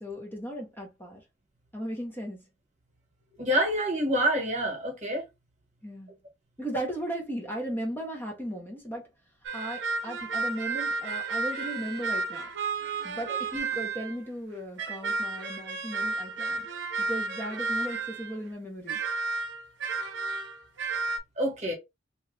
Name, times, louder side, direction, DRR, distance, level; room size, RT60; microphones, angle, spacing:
voice 1, 0.0-1.2 1.7-2.4 5.8-6.1 6.6-9.1 9.5-12.5 13.0-16.7 17.0-19.0, right 1 dB, 10° left, 0.8 m, -36 dB
voice 2, 3.4-5.2 21.4-21.7, right 1 dB, 40° right, 1.2 m, -27 dB
sound 1, 9.4-14.2 14.8-18.4 18.9-21.2, right 4 dB, 65° right, 0.7 m, -32 dB
2.9 x 2.4 x 3.2 m
head